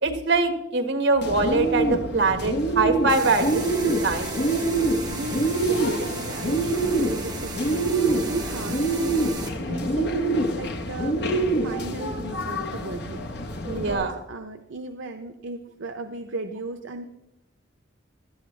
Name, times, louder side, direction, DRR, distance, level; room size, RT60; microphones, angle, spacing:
voice 1, 0.0-4.3 13.6-14.1, right 3 dB, 70° right, 7 dB, 1.4 m, -23 dB
Bird, 1.2-13.9, right 2 dB, 55° left, 1.0 m, -26 dB
sound 1, 3.1-9.5, right 4 dB, 20° right, 1.9 m, -36 dB
voice 2, 5.1-13.2 13.7-17.1, right 3 dB, 85° right, 6 dB, 0.7 m, -36 dB
17.0 x 12.0 x 3.2 m, 0.88 s
head